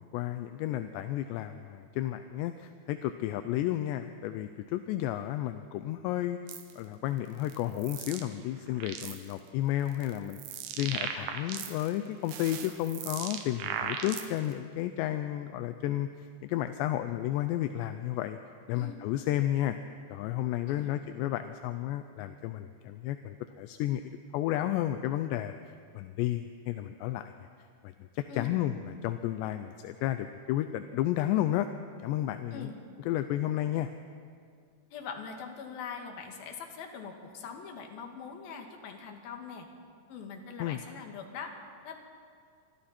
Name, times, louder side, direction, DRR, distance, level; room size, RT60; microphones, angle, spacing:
voice 1, 0.0-6.4 6.8-18.4 18.7-19.8 20.1-25.6 25.9-27.3 27.8-31.7 32.0-32.7 33.1-33.9 40.6-40.8, left 13 dB, 80° left, 9 dB, 2.6 m, -32 dB
sound 1, 6.5-6.7 7.4-8.3 8.6-9.3 9.9-11.9 12.2-14.5, right 7 dB, 80° right, 3.6 m, -38 dB
voice 2, 34.9-39.7 40.1-41.5 41.8-42.0, left 6 dB, 60° left, 3 dB, 3.4 m, -42 dB
27.5 x 25.0 x 4.4 m, 2.1 s
omnidirectional pair, 5.4 m